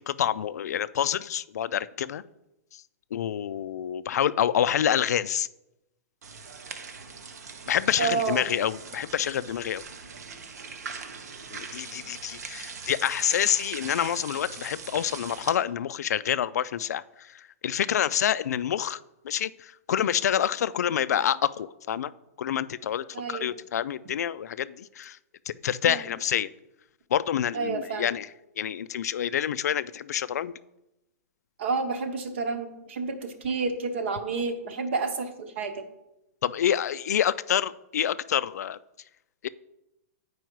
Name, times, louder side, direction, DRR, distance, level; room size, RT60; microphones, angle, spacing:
voice 1, 0.0-2.2 2.7-2.8 3.1-5.5 7.7-9.8 11.5-19.0 19.2-22.1 22.4-25.2 25.5-26.5 27.1-30.5 36.4-38.8 39.4-39.5, left 9 dB, 85° left, 15 dB, 0.3 m, -27 dB
sound 1, 6.2-15.5, right 5 dB, 85° right, 1.0 m, -41 dB
voice 2, 8.0-8.4 23.1-23.5 25.8-26.0 27.5-28.1 31.6-35.8, right 4 dB, 50° right, 8 dB, 0.9 m, -30 dB
9.3 x 4.7 x 4.6 m, 0.89 s
hypercardioid pair, 175°, 9 cm